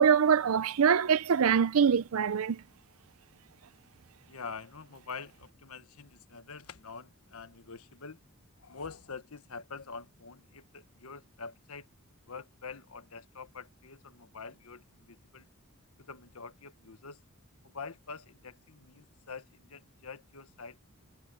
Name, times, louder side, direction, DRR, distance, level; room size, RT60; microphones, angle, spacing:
voice 1, 0.0-2.6, right 7 dB, 75° right, 0.5 m, -24 dB
voice 2, 4.3-8.2 8.6-11.9 12.2-15.5 16.0-17.2 17.6-20.8, left 5 dB, 80° left, 1.3 m, -46 dB
head